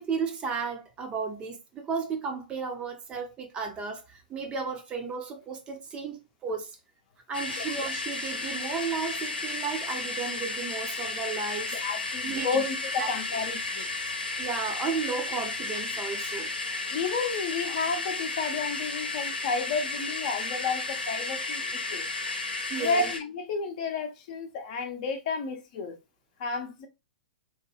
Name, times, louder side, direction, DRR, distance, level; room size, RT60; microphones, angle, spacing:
voice 1, 0.0-6.8 7.3-11.8 12.2-12.7 13.0-13.1 14.4-16.5 22.7-23.1, right 5 dB, 20° right, 0.6 m, -34 dB
sound 1, 7.3-23.2, left 3 dB, 75° left, 0.8 m, -33 dB
voice 2, 11.7-13.9 16.9-22.1 22.8-26.0 26.4-26.9, left 4 dB, 45° left, 0.7 m, -31 dB
3.0 x 2.2 x 3.0 m
figure-of-eight pair, 110°, 5 cm